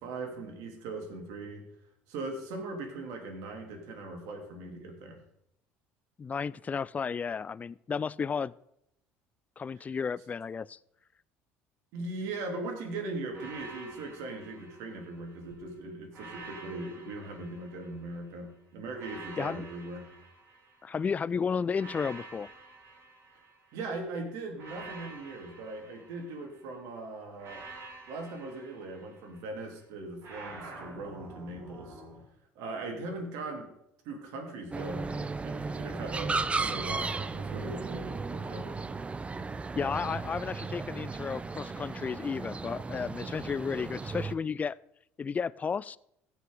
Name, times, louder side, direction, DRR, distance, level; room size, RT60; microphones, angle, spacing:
voice 1, 0.0-1.6 2.1-5.2 11.9-20.1 23.7-27.6 28.1-32.0 32.6-33.7 34.0-38.8, right 2 dB, 70° right, 2 dB, 2.6 m, -39 dB
voice 2, 6.2-8.5 9.6-10.8 19.4-19.7 20.8-22.5 39.8-44.8 45.2-46.0, left 6 dB, 25° left, 20 dB, 0.3 m, -33 dB
sound 1, 13.3-15.5 16.1-18.3 18.9-21.1 21.7-23.9 24.6-26.7 27.4-29.5 30.2-32.2, right 3 dB, 50° right, 4.1 m, -48 dB
sound 2, 34.7-44.3, right 4 dB, 20° right, 0.6 m, -35 dB
16.0 x 5.8 x 3.7 m, 0.79 s
hypercardioid pair, 75°, 6 cm